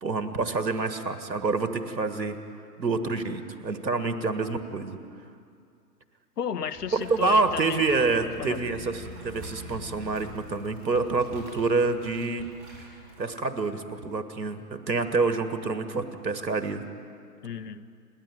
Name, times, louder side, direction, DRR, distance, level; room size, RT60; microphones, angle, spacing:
voice 1, 0.0-2.4 2.8-5.0 6.9-12.5 13.2-16.8, right 3 dB, 90° right, 9 dB, 1.7 m, -27 dB
voice 2, 6.4-7.8 8.2-8.6 17.4-17.9, left 7 dB, 70° left, 14 dB, 1.1 m, -33 dB
sound 1, 6.7-13.2, equal, 25° right, 6.2 m, -45 dB
28.5 x 10.0 x 9.1 m, 2.4 s
figure-of-eight pair, 135°, 49 cm